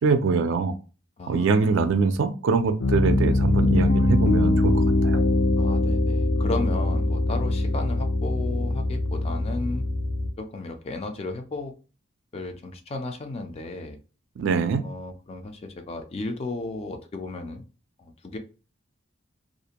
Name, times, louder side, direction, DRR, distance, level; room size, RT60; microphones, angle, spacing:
voice 1, 0.0-0.7 1.3-5.2 14.4-14.8, right 4 dB, 65° right, 0.3 m, -23 dB
voice 2, 1.2-1.7 5.6-9.9 10.4-11.7 12.3-14.0 14.8-17.6 18.0-18.4, left 2 dB, 30° left, 0.3 m, -34 dB
Piano, 2.8-10.3, left 2 dB, 75° left, 0.6 m, -22 dB
2.4 x 2.1 x 2.8 m
head